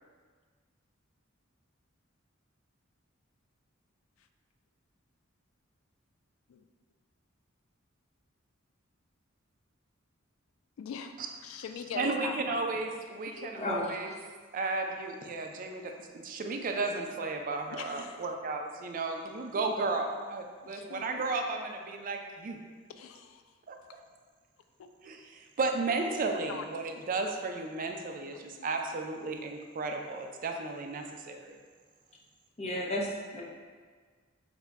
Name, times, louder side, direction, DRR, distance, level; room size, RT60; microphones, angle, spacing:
voice 1, 10.8-11.2 11.4-12.6 13.3-13.6 13.9-14.0 17.7-18.2 20.6-21.0 23.0-23.4 24.8-24.9 26.5-26.6 28.6-28.7, left 6 dB, 80° left, 8 dB, 0.3 m, -41 dB
voice 2, 11.9-14.1 14.5-22.6 23.7-23.8 25.0-31.6, right 3 dB, 45° right, 3 dB, 0.4 m, -34 dB
voice 3, 32.6-33.4, left 1 dB, 30° left, -2 dB, 0.6 m, -32 dB
4.9 x 2.2 x 3.4 m, 1.5 s
head